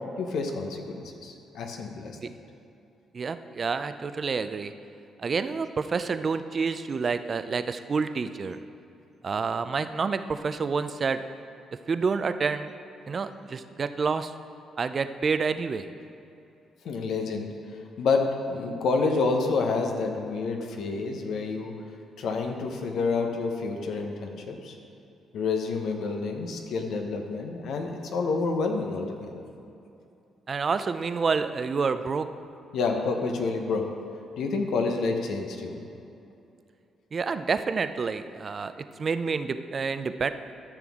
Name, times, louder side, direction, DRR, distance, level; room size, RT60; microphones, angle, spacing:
voice 1, 0.2-2.2 16.8-17.5 18.0-21.7 22.2-24.7 25.3-29.4 32.7-33.9 34.4-35.8, left 4 dB, 70° left, 4 dB, 1.0 m, -28 dB
voice 2, 3.1-4.7 5.2-8.6 9.2-11.2 11.9-12.7 13.1-14.3 14.8-15.9 30.5-32.3 37.1-40.3, right 5 dB, 40° right, 11 dB, 0.4 m, -28 dB
13.0 x 6.1 x 3.6 m, 2.7 s
cardioid pair, 90°, 0 cm